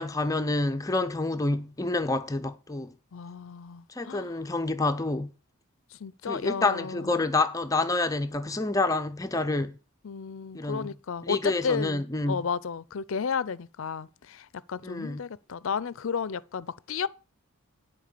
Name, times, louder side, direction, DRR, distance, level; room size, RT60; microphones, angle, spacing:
voice 1, 0.0-2.9 3.9-5.3 6.3-9.7 10.5-10.9 11.2-12.4 14.8-15.2, left 2 dB, 15° left, 0.5 m, -28 dB
voice 2, 3.1-4.3 6.0-7.3 10.0-17.1, left 6 dB, 65° left, 0.5 m, -33 dB
10.5 x 4.6 x 6.7 m
head